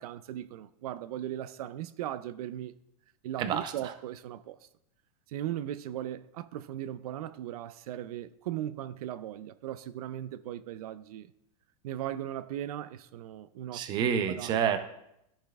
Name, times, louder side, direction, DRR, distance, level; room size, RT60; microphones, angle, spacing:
voice 1, 0.0-2.7 3.2-4.7 5.3-11.3 11.8-14.5, right 11 dB, 75° right, 0.4 m, -38 dB
voice 2, 3.4-3.7 13.7-14.8, right 8 dB, 20° right, 0.5 m, -28 dB
13.5 x 5.6 x 2.3 m
supercardioid pair, 165°, 19 cm